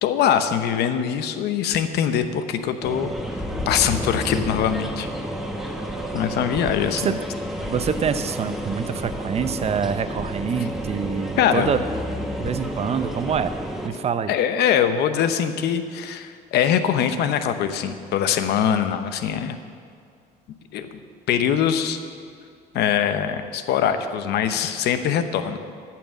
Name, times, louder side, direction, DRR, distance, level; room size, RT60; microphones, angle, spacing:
voice 1, 0.0-5.1 6.1-7.1 11.4-11.7 14.3-19.6 20.7-21.0 21.3-22.0 22.7-25.6, left 9 dB, 75° left, 9 dB, 0.8 m, -23 dB
sound 1, 2.8-13.9, equal, ahead, 1.3 m, -30 dB
voice 2, 7.7-11.8 12.4-13.5 13.8-14.4, right 7 dB, 40° right, 11 dB, 0.6 m, -26 dB
12.5 x 6.0 x 7.2 m, 2.3 s
cardioid pair, 110°, 17 cm